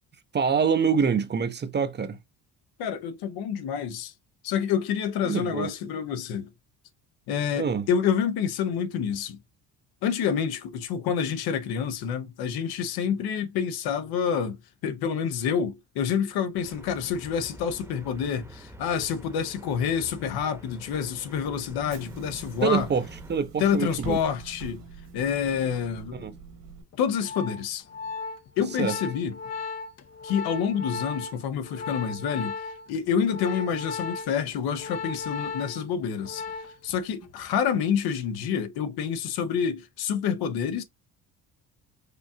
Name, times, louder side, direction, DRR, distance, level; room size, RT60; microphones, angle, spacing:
voice 1, 0.3-2.2 5.2-5.7 7.6-7.9 22.6-24.2 26.1-26.3 28.8-29.0, right 6 dB, 30° right, 0.6 m, -25 dB
voice 2, 2.8-4.1 4.4-6.5 7.3-9.4 10.0-22.9 23.6-24.8 25.1-26.3 27.0-27.8 28.6-29.4 30.2-32.6 32.9-36.4 36.8-40.8, left 7 dB, 80° left, 0.9 m, -28 dB
sound 1, 16.6-23.4, equal, 5° right, 0.9 m, -47 dB
Bus / Engine, 21.7-26.8, right 5 dB, 60° right, 1.6 m, -44 dB
Organ, 26.9-36.9 37.2-37.5, left 4 dB, 45° left, 0.7 m, -36 dB
4.9 x 2.4 x 2.7 m
cardioid pair, 110°, 37 cm